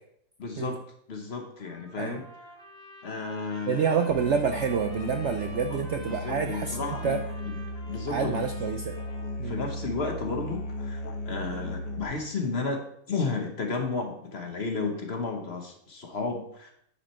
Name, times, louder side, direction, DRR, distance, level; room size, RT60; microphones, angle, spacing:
voice 1, 0.4-0.8 1.1-2.2 3.0-4.2 5.7-7.2 7.5-7.6 7.9-8.4 9.4-12.8 13.1-16.7, left 4 dB, 45° left, 4 dB, 1.2 m, -33 dB
Trumpet, 1.6-9.5, right 1 dB, 5° left, 1.5 m, -49 dB
voice 2, 3.7-7.2 8.1-9.0 9.4-9.6, right 6 dB, 65° right, 6 dB, 0.7 m, -28 dB
Musical instrument, 4.1-12.0, left 1 dB, 60° left, 1.5 m, -36 dB
9.8 x 5.0 x 4.3 m, 0.70 s
omnidirectional pair, 1.7 m